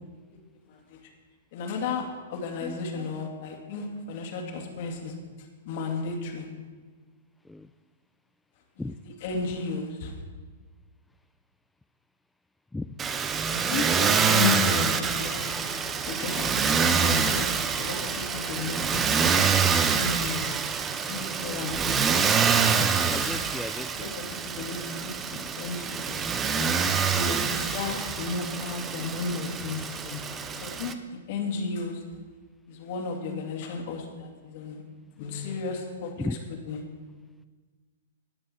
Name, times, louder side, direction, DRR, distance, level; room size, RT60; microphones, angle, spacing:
voice 1, 0.7-1.0 1.5-5.1 5.6-6.5 8.8-8.9 9.2-10.2 13.5-20.6 21.1-22.2 23.9-26.7 27.1-32.0 32.7-34.8 35.2-36.3 36.7-36.8, left 4 dB, 45° left, 2 dB, 2.3 m, -34 dB
Motor vehicle (road), 13.0-30.9, right 6 dB, 20° right, 0.8 m, -26 dB
voice 2, 22.8-24.1 36.2-36.4, left 2 dB, 5° left, 9 dB, 0.3 m, -35 dB
18.0 x 7.8 x 4.4 m, 1.4 s
figure-of-eight pair, 110°, 0 cm